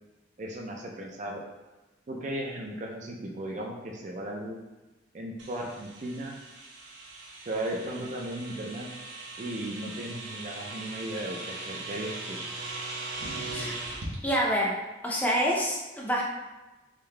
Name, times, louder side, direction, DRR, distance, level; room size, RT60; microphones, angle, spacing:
voice 1, 0.4-1.4 2.1-4.6 5.1-6.4 7.5-8.9 9.4-12.4, right 1 dB, 40° right, 0 dB, 0.4 m, -36 dB
sound 1, 5.4-14.1, right 2 dB, 75° right, 0.8 m, -39 dB
voice 2, 14.2-14.8 15.0-16.2, equal, 10° left, -3 dB, 0.6 m, -27 dB
3.7 x 2.7 x 3.3 m, 1.1 s
head